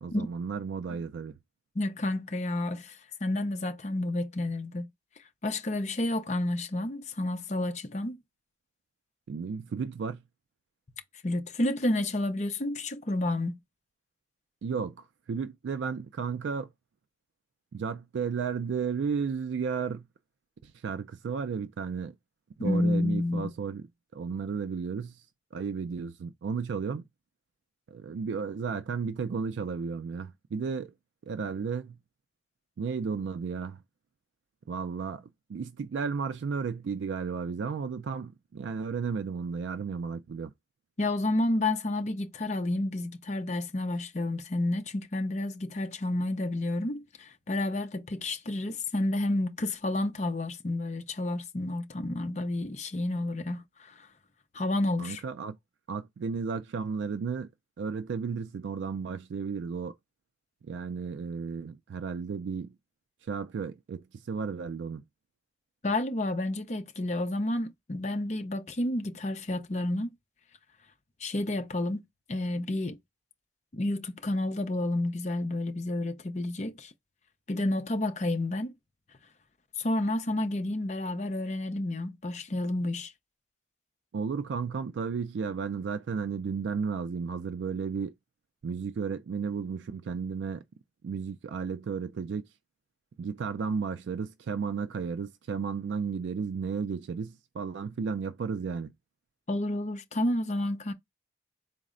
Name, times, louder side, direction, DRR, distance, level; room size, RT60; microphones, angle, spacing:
voice 1, 0.0-1.3 9.3-10.2 14.6-16.7 17.7-20.1 20.6-22.1 22.6-23.9 24.1-25.2 25.5-27.0 27.9-30.9 31.2-32.0 32.8-33.8 34.7-40.5 55.0-55.6 55.9-57.5 57.8-59.9 60.6-62.7 63.2-65.0 84.1-88.1 88.6-90.6 91.0-92.5 93.2-98.9, right 5 dB, 85° right, 0.3 m, -33 dB
voice 2, 1.8-4.9 5.4-8.2 11.2-13.5 22.6-23.5 41.0-54.1 54.5-55.2 65.8-70.1 71.2-72.0 72.3-73.0 73.7-76.9 77.5-78.7 79.8-83.1 99.5-100.9, left 1 dB, 40° left, 0.6 m, -30 dB
4.0 x 2.0 x 3.7 m
head